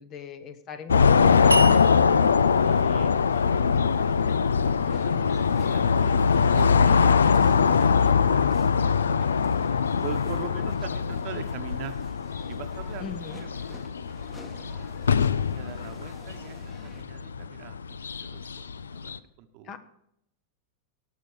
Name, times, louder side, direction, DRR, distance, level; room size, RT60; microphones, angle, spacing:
voice 1, 0.0-1.9 13.0-13.4 19.6-19.8, left 6 dB, 35° left, 12 dB, 1.1 m, -40 dB
sound 1, 0.9-19.2, left 6 dB, 70° left, 0.4 m, -23 dB
sound 2, 1.0-17.0, left 2 dB, 15° left, 1.5 m, -49 dB
sound 3, 1.5-4.7, right 1 dB, 85° right, 0.7 m, -31 dB
voice 2, 2.6-5.3 5.7-5.9 6.5-8.2 10.0-12.0 12.5-13.1 13.3-13.8 14.4-14.9 15.5-17.7 18.2-18.7 18.9-19.7, right 10 dB, 45° right, 9 dB, 1.1 m, -42 dB
18.0 x 6.8 x 4.8 m, 0.75 s
figure-of-eight pair, 90°, 0 cm